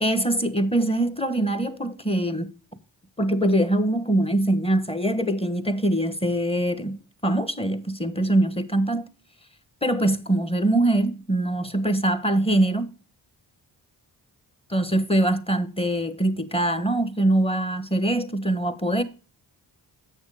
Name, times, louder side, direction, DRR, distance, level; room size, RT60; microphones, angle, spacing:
voice 1, 0.0-2.5 3.2-9.1 9.8-12.9 14.7-19.0, right 1 dB, 15° left, 1.1 m, -23 dB
8.1 x 6.4 x 4.9 m
cardioid pair, 60°, 45 cm